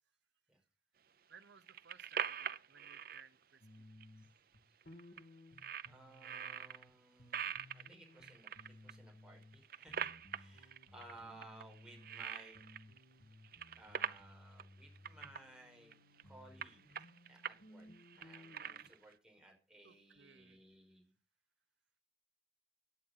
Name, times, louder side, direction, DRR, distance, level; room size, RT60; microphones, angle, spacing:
voice 1, 1.3-3.9 5.0-5.1 11.2-11.4 19.8-20.6, right 6 dB, 80° right, 12 dB, 0.9 m, -61 dB
sound 1, 1.4-3.2 4.0-4.1 4.4-4.5 4.8-5.2 5.6-6.8 7.3-8.9 9.4-11.1 11.4-13.0 13.3-14.3 14.6-14.7 15.0-15.4 15.9-16.2 16.6-17.6 17.9-19.1, right 7 dB, 55° right, 0.7 m, -43 dB
sound 2, 3.6-6.9 7.2-9.6 9.9-12.3 12.5-18.9, left 1 dB, 60° left, 2.7 m, -59 dB
voice 2, 5.9-8.5 8.8-12.6 13.8-15.9 16.2-17.9 18.1-21.1, right 1 dB, 5° right, 1 dB, 5.3 m, -59 dB
16.0 x 9.9 x 5.6 m, 0.33 s
head